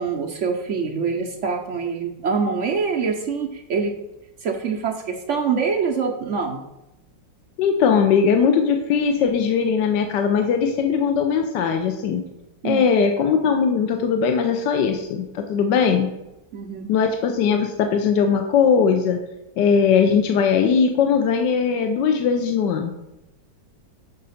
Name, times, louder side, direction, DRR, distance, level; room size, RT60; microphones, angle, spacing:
voice 1, 0.0-3.9 4.4-6.6 12.6-12.9 16.5-16.9, right 5 dB, 70° right, 3 dB, 0.7 m, -25 dB
voice 2, 7.6-12.2 12.6-16.1 16.9-19.2 19.6-22.9, left 6 dB, 70° left, 4 dB, 1.3 m, -19 dB
6.6 x 5.1 x 5.6 m, 0.92 s
omnidirectional pair, 2.0 m